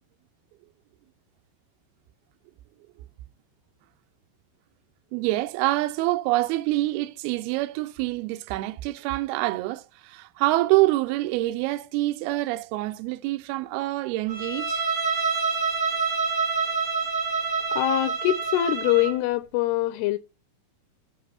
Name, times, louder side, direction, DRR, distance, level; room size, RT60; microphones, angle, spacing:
voice 1, 5.1-14.8, right 18 dB, 90° right, 2.2 m, -26 dB
Bowed string instrument, 14.3-19.2, right 5 dB, 45° right, 1.7 m, -27 dB
voice 2, 17.7-20.2, left 14 dB, 85° left, 2.3 m, -24 dB
6.6 x 5.5 x 5.8 m
omnidirectional pair, 5.2 m